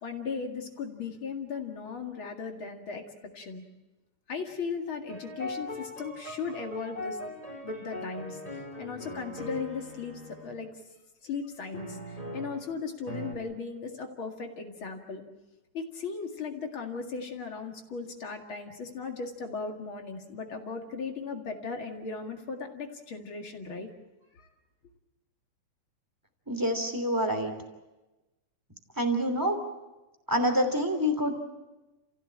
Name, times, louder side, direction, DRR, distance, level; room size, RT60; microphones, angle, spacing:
voice 1, 0.0-3.0 3.3-3.6 4.3-7.2 7.6-8.4 8.8-10.7 11.2-15.2 15.7-23.9 24.3-24.5, left 5 dB, 45° left, 3 dB, 2.5 m, -37 dB
sound 1, 5.1-10.6 11.7-12.7 13.1-13.3, left 1 dB, 10° left, 3.9 m, -40 dB
voice 2, 26.5-27.5 29.0-29.6 30.3-31.4, equal, 5° right, 5 dB, 2.4 m, -27 dB
29.5 x 16.0 x 8.6 m, 1.1 s
omnidirectional pair, 3.7 m